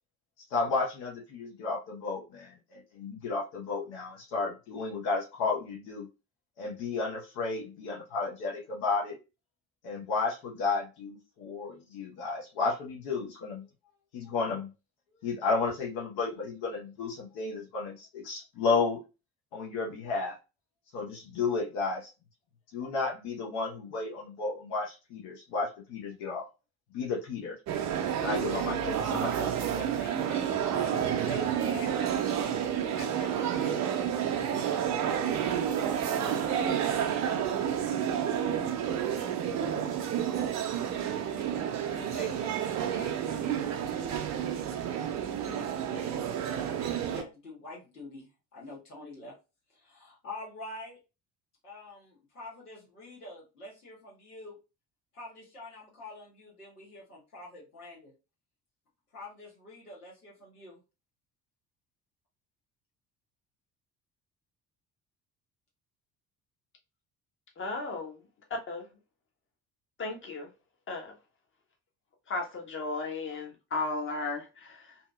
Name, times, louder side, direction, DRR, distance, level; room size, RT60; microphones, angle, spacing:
voice 1, 0.5-6.1 6.6-9.2 9.8-13.6 14.1-14.7 15.2-19.0 19.5-20.4 20.9-22.1 22.7-26.4 26.9-27.6 28.2-29.8, left 4 dB, 55° left, 0.9 m, -32 dB
sound 1, 27.7-47.2, right 9 dB, 40° right, 0.6 m, -30 dB
voice 2, 29.7-32.2 32.9-33.9 41.8-43.3 46.7-48.3 48.5-49.3 49.7-51.0 51.6-54.6 55.1-58.1 59.1-60.8, left 1 dB, 80° left, 1.2 m, -45 dB
voice 3, 67.6-68.2 68.7-68.9 70.0-70.5 70.9-71.1 72.3-75.0, left 3 dB, 25° left, 1.0 m, -35 dB
2.7 x 2.7 x 2.2 m
figure-of-eight pair, 50°, 45 cm